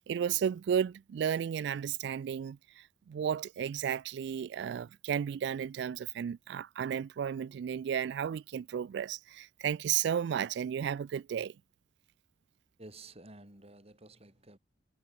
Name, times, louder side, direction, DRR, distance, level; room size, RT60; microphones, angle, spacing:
voice 1, 0.0-11.5, right 8 dB, 65° right, 0.3 m, -33 dB
voice 2, 12.8-14.6, right 2 dB, 35° right, 6.1 m, -52 dB
head